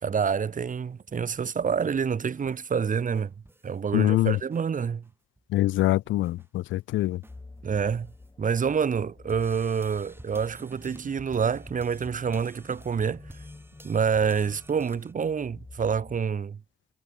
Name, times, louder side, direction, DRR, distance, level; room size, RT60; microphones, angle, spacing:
voice 1, 0.0-3.3 3.6-5.1 7.6-8.1 8.4-13.2 13.8-16.6, right 6 dB, 40° right, 2.3 m, -27 dB
sound 1, 0.9-3.8 4.2-4.6 5.0-5.1 5.4-8.6 9.3-15.1, right 2 dB, 10° right, 4.6 m, -51 dB
voice 2, 3.9-4.4 5.5-7.2, left 15 dB, 75° left, 0.5 m, -24 dB
sound 2, 7.3-16.2, left 3 dB, 20° left, 6.1 m, -49 dB
cardioid pair, 90°, 20 cm